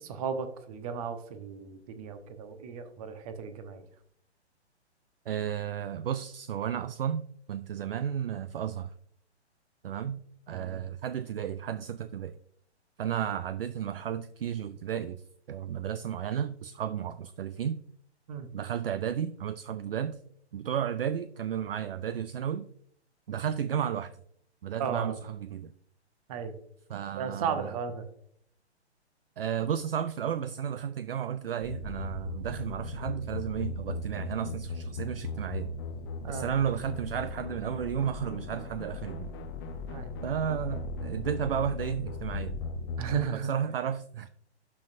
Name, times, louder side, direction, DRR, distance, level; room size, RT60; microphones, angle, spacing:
voice 1, 0.0-3.8 10.5-10.8 18.3-18.5 24.8-25.2 26.3-26.6 27.1-28.1 36.2-36.5 39.9-40.1 43.0-43.5, right 6 dB, 35° right, 1.0 m, -35 dB
voice 2, 5.3-7.2 7.5-8.9 9.8-12.3 13.0-15.2 15.5-17.8 18.5-20.2 20.5-22.6 23.3-24.1 24.6-25.7 26.9-27.7 29.4-35.7 36.3-39.3 40.2-42.6 43.3-44.3, right 9 dB, 55° right, 0.5 m, -33 dB
sound 1, 31.6-43.2, left 3 dB, 20° left, 0.6 m, -38 dB
12.0 x 5.5 x 2.6 m
figure-of-eight pair, 125°, 34 cm